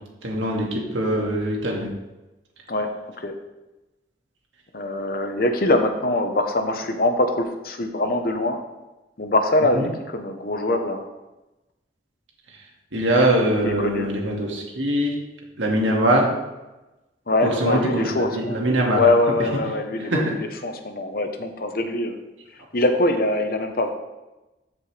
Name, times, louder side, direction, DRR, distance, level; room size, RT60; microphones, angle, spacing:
voice 1, 0.2-1.9 9.7-9.9 12.9-15.1 15.6-16.3 17.4-19.0 20.1-20.3, right 1 dB, 85° right, -1 dB, 2.0 m, -22 dB
voice 2, 4.7-8.6 9.2-11.0 13.6-14.1 17.3-18.6 18.9-22.1 22.7-23.9, left 2 dB, 50° left, 6 dB, 0.9 m, -23 dB
14.0 x 5.4 x 3.3 m, 1.0 s
head